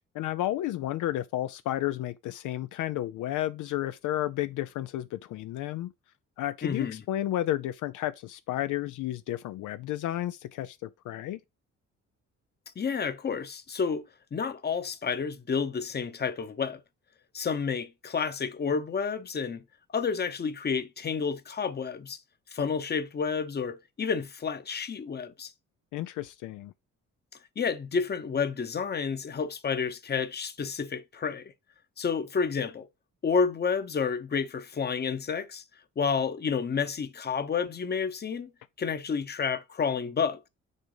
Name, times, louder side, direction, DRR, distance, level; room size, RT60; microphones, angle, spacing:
voice 1, 0.1-5.9 6.4-11.4 25.9-26.7, left 14 dB, 80° left, 0.5 m, -32 dB
voice 2, 6.6-7.0 12.8-14.0 14.3-16.8 17.3-19.6 19.9-22.2 22.5-25.5 27.6-31.5 32.0-32.9 33.2-35.6 36.0-38.5 38.8-40.5, left 6 dB, 35° left, 0.9 m, -30 dB
6.6 x 3.5 x 4.9 m
cardioid pair, 90°, 30 cm